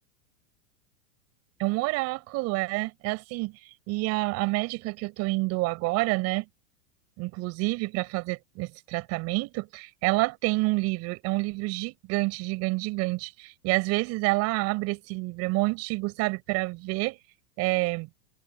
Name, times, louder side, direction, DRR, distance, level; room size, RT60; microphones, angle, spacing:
voice 1, 1.6-6.5 7.2-17.2 17.6-18.1, right 24 dB, 45° right, 6.6 m, -28 dB
supercardioid pair, 135°, 34 cm